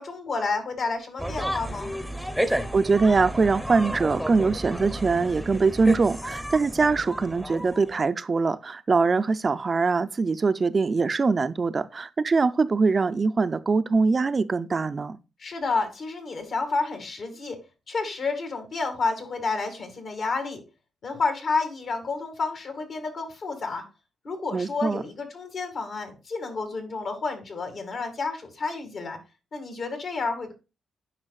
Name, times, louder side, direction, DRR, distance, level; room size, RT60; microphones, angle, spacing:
voice 1, 0.0-1.9 15.4-17.6 17.9-20.6 21.0-23.8 24.2-29.2 29.5-30.5, left 4 dB, 60° left, 2.1 m, -30 dB
sound 1, 1.2-8.1, equal, 5° left, 0.7 m, -32 dB
voice 2, 2.7-15.2 24.5-25.0, right 4 dB, 35° right, 0.4 m, -23 dB
9.7 x 5.0 x 2.3 m
cardioid pair, 85°, 0 cm